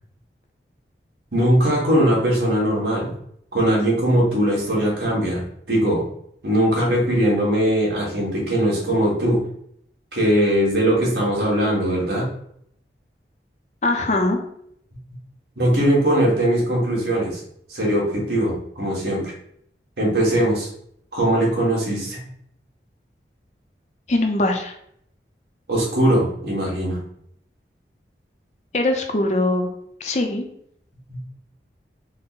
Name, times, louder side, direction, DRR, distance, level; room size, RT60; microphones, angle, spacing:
voice 1, 1.3-3.1 3.5-6.0 6.4-9.4 10.1-12.2 15.6-17.4 17.7-19.3 20.0-20.7 21.1-22.2 25.7-27.0 31.1-31.2, right 1 dB, 70° right, -4 dB, 1.4 m, -20 dB
voice 2, 13.8-14.4 24.1-24.7 28.7-29.7 30.0-30.4, left 2 dB, 40° left, 3 dB, 0.4 m, -21 dB
3.8 x 2.0 x 3.9 m, 0.68 s
head